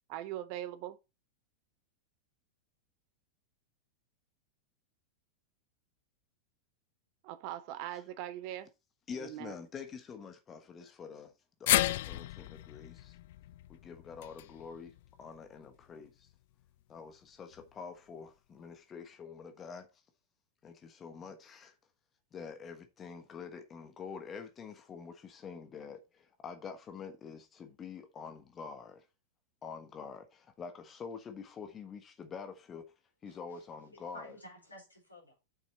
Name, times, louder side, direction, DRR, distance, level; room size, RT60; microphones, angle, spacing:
voice 1, 0.1-1.0 7.2-8.7 9.2-9.5, right 13 dB, 45° right, 0.7 m, -41 dB
voice 2, 9.1-11.3 11.6-13.2 13.7-16.3 16.9-19.9 20.6-21.7 22.3-29.1 29.6-32.9 33.2-34.3, left 6 dB, 25° left, 1.2 m, -46 dB
sound 1, 11.7-15.9 16.3-16.4 17.5-17.6, left 15 dB, 55° left, 0.3 m, -34 dB
voice 3, 33.3-33.6 33.9-35.4, equal, 85° left, 4.3 m, -52 dB
7.6 x 6.2 x 4.2 m
figure-of-eight pair, 90°, 0 cm